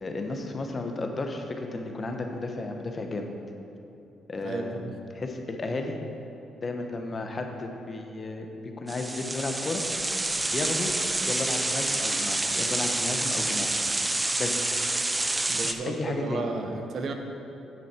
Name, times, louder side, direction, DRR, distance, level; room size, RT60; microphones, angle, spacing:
voice 1, 0.0-3.3 4.3-4.8 5.1-6.0 6.6-9.8 10.5-10.9 11.3-13.8 14.4-14.8 15.6-16.4, left 2 dB, 35° left, 4 dB, 1.0 m, -33 dB
voice 2, 4.4-4.9 10.4-10.5 14.2-14.4 15.5-17.1, right 3 dB, 55° right, 4 dB, 0.9 m, -34 dB
sound 1, 8.9-15.7, right 2 dB, 15° right, 0.6 m, -28 dB
10.5 x 7.3 x 4.4 m, 2.8 s
cardioid pair, 90°, 0 cm